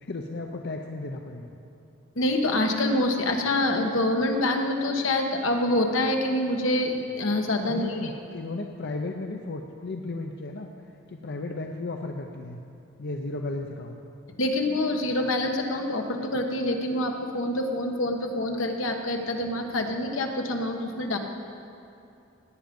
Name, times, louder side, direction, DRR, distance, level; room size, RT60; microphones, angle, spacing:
voice 1, 0.0-1.5 7.6-10.7 11.1-12.6 13.0-14.0, left 2 dB, 55° left, 3 dB, 0.7 m, -34 dB
voice 2, 2.2-8.1 14.4-21.2, left 1 dB, 80° left, 3 dB, 1.3 m, -26 dB
18.0 x 9.1 x 5.3 m, 2.6 s
head